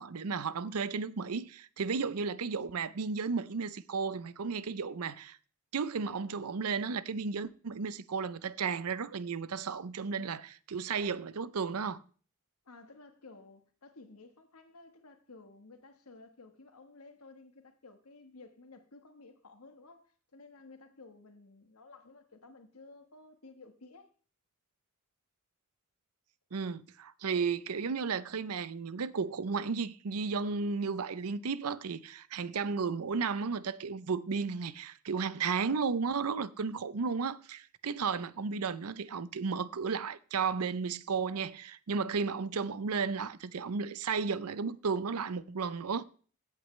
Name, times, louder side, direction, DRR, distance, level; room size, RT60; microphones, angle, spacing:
voice 1, 0.0-5.4 5.7-12.0 26.5-46.0, right 5 dB, 85° right, 0.6 m, -34 dB
voice 2, 12.6-24.1, left 3 dB, 75° left, 1.4 m, -54 dB
16.0 x 8.3 x 3.2 m
head